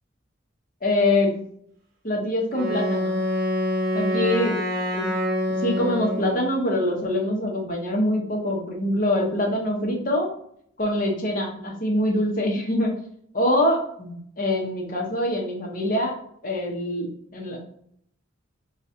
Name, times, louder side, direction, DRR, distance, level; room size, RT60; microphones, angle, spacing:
voice 1, 0.8-1.3 2.0-3.2 3.9-4.6 4.9-5.1 5.6-10.3 10.8-12.9 13.3-16.1 16.4-17.6, left 1 dB, 45° left, 0 dB, 1.0 m, -24 dB
Wind instrument woodwind instrument, 2.5-6.5, equal, 50° right, 0.9 m, -26 dB
4.5 x 2.4 x 2.8 m, 0.66 s
head